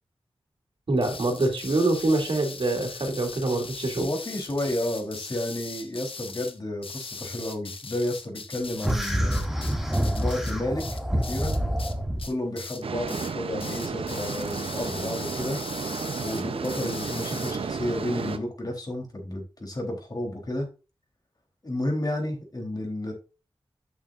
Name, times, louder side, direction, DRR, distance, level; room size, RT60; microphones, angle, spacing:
voice 1, 0.9-4.1, right 2 dB, 70° right, 2 dB, 2.7 m, -25 dB
sound 1, 1.0-11.9 12.2-12.8 13.1-13.3 13.6-17.6, left 4 dB, 75° left, 1.0 m, -40 dB
voice 2, 4.0-9.4 10.0-10.8 11.1-11.5 12.2-15.6 16.2-20.7 21.6-23.1, left 1 dB, 45° left, 2 dB, 3.8 m, -31 dB
sound 2, 8.8-12.3, equal, 5° right, 2.4 m, -27 dB
sound 3, 12.8-18.4, right 5 dB, 90° right, 0.7 m, -32 dB
8.5 x 6.7 x 2.6 m, 0.31 s
cardioid pair, 45°, 9 cm